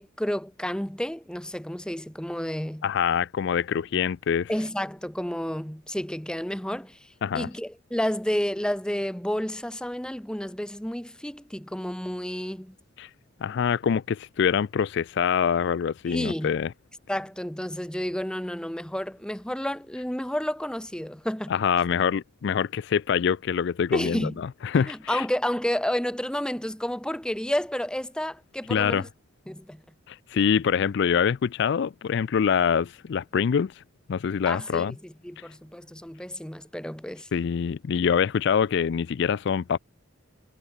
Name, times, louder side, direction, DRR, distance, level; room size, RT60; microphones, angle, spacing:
voice 1, 0.0-2.9 4.5-7.1 7.3-12.7 16.1-16.6 17.1-21.5 23.9-24.4 24.7-29.1 29.5-29.8 34.5-37.3, equal, 5° left, 0.9 m, -31 dB
voice 2, 2.8-4.5 7.2-7.5 13.0-13.1 13.4-16.7 21.5-25.2 28.7-29.0 30.1-33.8 34.1-34.9 37.3-39.8, left 7 dB, 60° left, 0.4 m, -25 dB
head